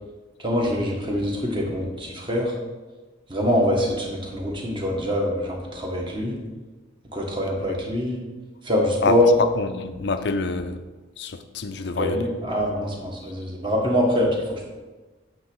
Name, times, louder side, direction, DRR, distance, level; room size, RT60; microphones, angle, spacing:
voice 1, 0.4-2.5 3.3-6.4 7.1-8.2 8.6-9.3 12.0-14.3, left 1 dB, 25° right, 1.5 m, -24 dB
voice 2, 9.6-10.8 11.2-12.3, left 3 dB, 60° left, 0.5 m, -27 dB
9.2 x 3.5 x 6.1 m
head